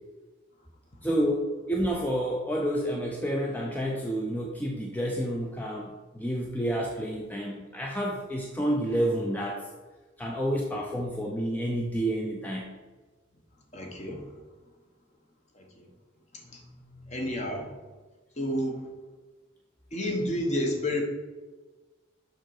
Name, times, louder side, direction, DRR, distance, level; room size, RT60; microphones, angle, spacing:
voice 1, 1.0-9.7 10.2-12.7 16.6-17.2, equal, 10° left, -1 dB, 0.5 m, -29 dB
voice 2, 13.7-14.2 15.6-15.9 17.1-17.7 18.4-18.8 19.9-21.0, left 1 dB, 35° left, 2 dB, 1.1 m, -30 dB
6.6 x 5.7 x 4.8 m, 1.3 s
head